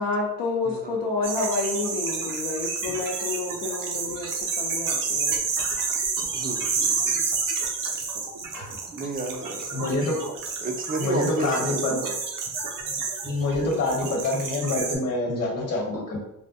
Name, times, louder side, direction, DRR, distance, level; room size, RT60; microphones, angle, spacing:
voice 1, 0.0-5.4 13.6-14.2, left 3 dB, 65° left, -3 dB, 0.7 m, -29 dB
voice 2, 0.6-1.0 6.3-7.2 8.9-9.9 10.6-12.1, right 3 dB, 25° right, 4 dB, 0.4 m, -32 dB
sound 1, 1.2-14.9, right 5 dB, 60° right, 0.7 m, -29 dB
voice 3, 9.7-10.2 11.0-11.9 13.2-16.2, left 2 dB, 45° left, 0 dB, 1.1 m, -26 dB
3.4 x 2.2 x 2.6 m, 0.85 s
cardioid pair, 80°, 36 cm